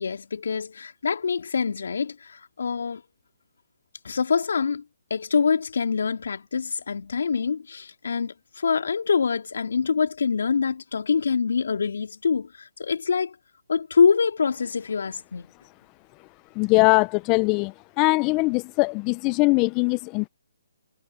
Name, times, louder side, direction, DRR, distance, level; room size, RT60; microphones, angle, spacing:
voice 1, 0.0-3.0 4.0-4.8 5.1-13.3 13.7-15.5, left 5 dB, 70° left, 4.1 m, -25 dB
voice 2, 16.6-20.3, left 27 dB, 25° left, 0.7 m, -21 dB
hypercardioid pair, 145°, 0 cm